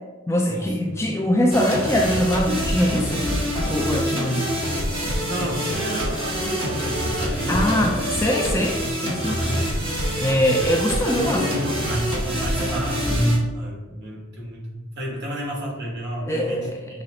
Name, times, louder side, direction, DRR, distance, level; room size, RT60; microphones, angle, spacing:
voice 1, 0.3-3.3 3.7-4.4 7.5-9.3 10.2-11.5 16.3-16.9, left 1 dB, 10° left, 0 dB, 0.3 m, -22 dB
sound 1, 1.5-13.4, equal, 25° right, 1.1 m, -26 dB
voice 2, 4.0-4.5 5.3-7.8 9.2-9.7 11.1-17.0, equal, 50° right, -3 dB, 1.3 m, -30 dB
5.6 x 2.0 x 3.7 m, 1.1 s
head